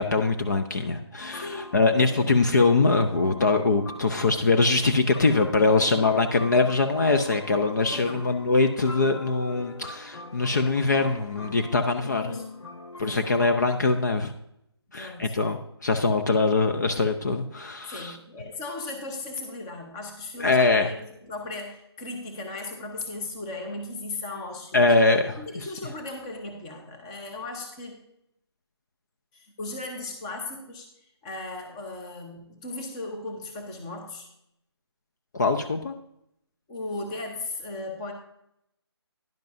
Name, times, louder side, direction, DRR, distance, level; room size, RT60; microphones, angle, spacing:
voice 1, 0.0-12.2 13.0-14.3 14.9-18.1 20.4-20.9 24.7-25.6 35.3-35.9, left 3 dB, 40° left, 6 dB, 0.6 m, -23 dB
sound 1, 1.2-13.7, left 3 dB, 85° left, 1.0 m, -42 dB
voice 2, 7.9-8.2 12.2-12.4 13.0-13.3 14.9-15.4 17.9-24.9 25.4-28.0 29.3-30.9 31.2-34.3 36.7-38.1, left 2 dB, 10° left, 3 dB, 0.8 m, -37 dB
10.5 x 10.5 x 2.6 m, 0.77 s
hypercardioid pair, 170°, 14 cm